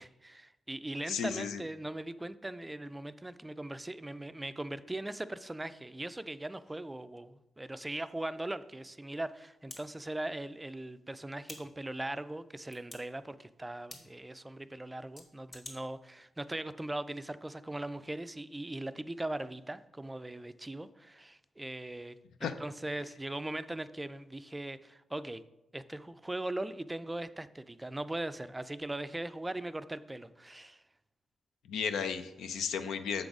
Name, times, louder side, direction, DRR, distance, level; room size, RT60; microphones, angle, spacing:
voice 1, 0.0-25.4 25.7-30.8, right 1 dB, 15° right, 13 dB, 0.3 m, -40 dB
voice 2, 1.0-1.6 22.4-22.5 31.7-33.2, left 7 dB, 90° left, 9 dB, 0.4 m, -34 dB
sound 1, 8.0-8.1 9.7-9.8 11.4-11.6 12.7-13.0 13.9-14.0 15.2-15.8, left 2 dB, 35° left, 1.5 m, -46 dB
6.8 x 3.9 x 4.8 m, 0.93 s
cardioid pair, 65°, 0 cm